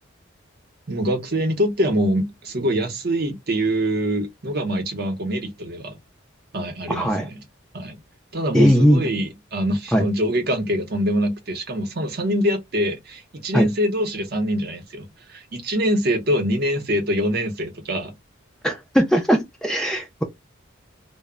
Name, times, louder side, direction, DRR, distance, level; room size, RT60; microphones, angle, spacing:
voice 1, 0.9-6.0 6.5-7.4 7.7-8.0 8.3-18.1, equal, 50° right, 0.7 m, -24 dB
voice 2, 6.9-7.3 8.5-9.0 9.9-10.1 13.5-13.7 18.6-20.2, equal, 5° left, 0.4 m, -19 dB
2.1 x 2.0 x 3.5 m
head